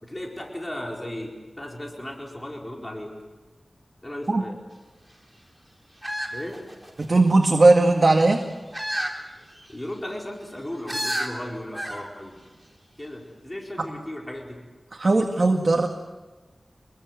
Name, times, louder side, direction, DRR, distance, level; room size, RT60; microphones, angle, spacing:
voice 1, 0.0-3.1 4.0-4.6 6.3-6.6 9.7-12.3 13.0-14.6, left 1 dB, 20° left, -1 dB, 4.6 m, -36 dB
sound 1, 6.0-7.2 8.7-9.2 9.6-9.7 10.9-11.3 11.7-12.0 12.4-12.5, right 1 dB, 5° right, 4.0 m, -30 dB
voice 2, 7.0-8.4 14.9-15.9, right 2 dB, 50° right, 3 dB, 2.0 m, -18 dB
27.0 x 22.0 x 8.1 m, 1.2 s
wide cardioid pair, 90°, 0 cm